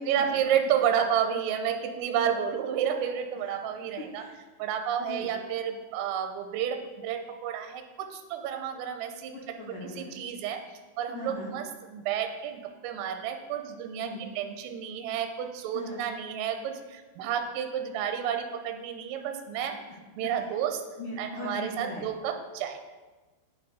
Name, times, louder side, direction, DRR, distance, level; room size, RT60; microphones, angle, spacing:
voice 1, 0.1-4.2 4.6-9.3 9.8-10.6 11.0-19.8 20.2-20.8 21.2-22.8, right 8 dB, 85° right, 6 dB, 3.3 m, -31 dB
voice 2, 4.0-4.3 5.0-5.3 9.3-10.2 11.1-11.5 14.0-14.2 15.7-16.0 21.0-22.1, left 2 dB, 75° left, -3 dB, 1.9 m, -39 dB
8.6 x 8.0 x 4.9 m, 1.2 s
omnidirectional pair, 5.8 m